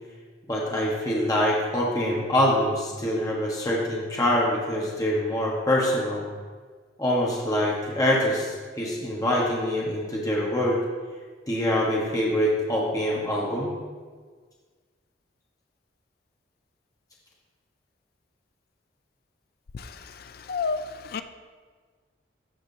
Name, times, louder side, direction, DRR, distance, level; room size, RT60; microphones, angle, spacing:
voice 1, 0.5-6.2 7.0-10.8 11.5-13.7, left 1 dB, 20° left, -4 dB, 1.3 m, -25 dB
voice 2, 19.7-21.2, left 4 dB, 55° left, 10 dB, 0.4 m, -32 dB
13.5 x 6.0 x 2.7 m, 1.5 s
head